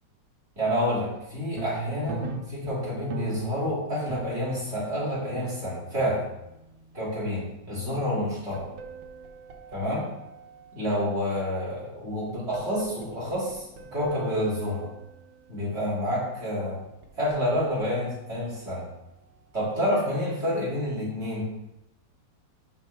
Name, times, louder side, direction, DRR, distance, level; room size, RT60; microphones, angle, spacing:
voice 1, 0.6-6.2 6.9-8.7 9.7-10.1 10.7-14.9 15.5-16.8 17.2-18.8 19.5-21.4, equal, 35° right, -7 dB, 3.0 m, -28 dB
sound 1, 1.2-1.3 1.6-11.2 12.3-15.1 16.8-18.0, right 5 dB, 85° right, 1.7 m, -41 dB
12.0 x 4.6 x 3.5 m, 0.90 s
omnidirectional pair, 2.0 m